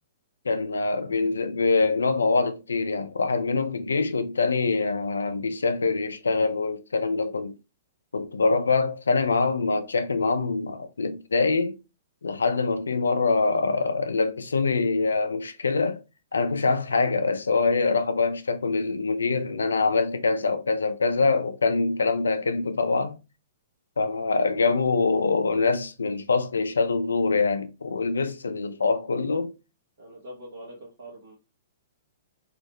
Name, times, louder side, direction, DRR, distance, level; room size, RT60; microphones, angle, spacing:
voice 1, 0.5-7.5 8.1-11.8 12.2-16.0 16.3-23.2 24.0-29.5, left 4 dB, 90° left, 0.4 m, -24 dB
voice 2, 30.0-31.3, right 1 dB, 70° right, 0.9 m, -43 dB
2.8 x 2.1 x 2.9 m
hypercardioid pair, 125°, 0 cm